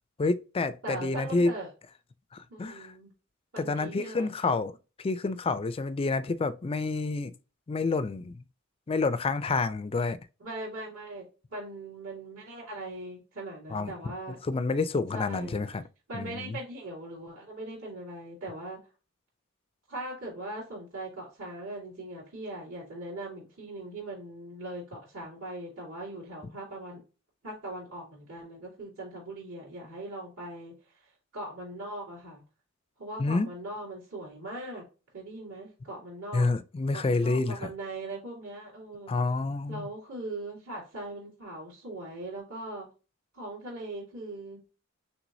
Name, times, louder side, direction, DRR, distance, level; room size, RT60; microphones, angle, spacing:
voice 1, 0.2-1.5 2.3-2.9 3.6-7.3 7.7-8.4 8.9-10.2 13.7-13.9 14.4-15.8 16.1-16.6 33.2-33.5 36.3-37.7 39.1-39.9, left 3 dB, 25° left, 0.3 m, -28 dB
voice 2, 0.8-1.7 2.5-3.1 3.5-4.3 10.4-11.2 11.5-14.4 15.1-15.6 16.1-18.8 19.9-27.0 27.4-30.7 31.3-32.4 33.0-34.8 35.1-36.5 36.9-39.1 39.7-42.9 43.3-44.6, right 1 dB, 70° right, 2.8 m, -40 dB
6.1 x 3.3 x 2.6 m
head